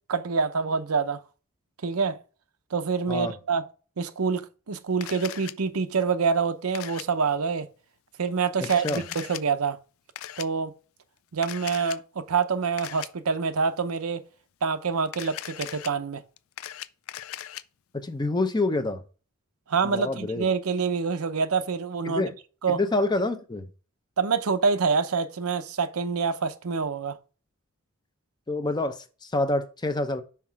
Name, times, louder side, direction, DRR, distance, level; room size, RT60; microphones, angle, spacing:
voice 1, 0.1-1.2 1.8-2.2 2.7-3.6 4.0-7.7 8.2-9.8 10.4-10.7 11.3-14.2 14.6-16.2 19.7-22.2 22.6-22.8 24.2-27.2, right 5 dB, 85° right, 0.7 m, -26 dB
Camera, 5.0-5.5 6.7-7.0 8.6-9.4 10.2-10.5 11.4-12.0 12.8-13.1 15.1-15.9 16.4-17.6, left 12 dB, 70° left, 0.4 m, -38 dB
voice 2, 8.6-9.0 17.9-19.0 19.8-20.5 22.0-22.3 22.7-23.7 28.5-30.2, left 2 dB, 20° left, 0.6 m, -27 dB
5.9 x 4.8 x 4.6 m
head